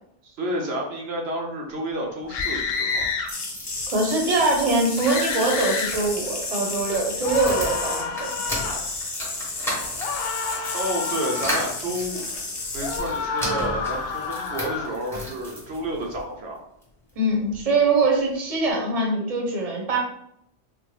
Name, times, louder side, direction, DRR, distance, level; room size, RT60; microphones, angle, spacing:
voice 1, 0.2-3.1 10.7-12.2 12.7-16.6, right 1 dB, 75° right, 0 dB, 0.9 m, -30 dB
sound 1, 2.2-16.2 16.8-17.7 18.0-18.1 18.3-18.4, left 1 dB, 5° left, 0.8 m, -36 dB
sound 2, 2.3-3.3 5.0-6.0 7.2-8.8 10.0-11.7 12.8-15.0, left 5 dB, 70° left, 0.8 m, -29 dB
sound 3, 3.3-13.0, left 3 dB, 45° left, 0.3 m, -32 dB
voice 2, 3.9-8.3 17.2-20.0, right 2 dB, 40° right, 0 dB, 0.8 m, -23 dB
3.6 x 2.1 x 3.2 m, 0.75 s
omnidirectional pair, 1.1 m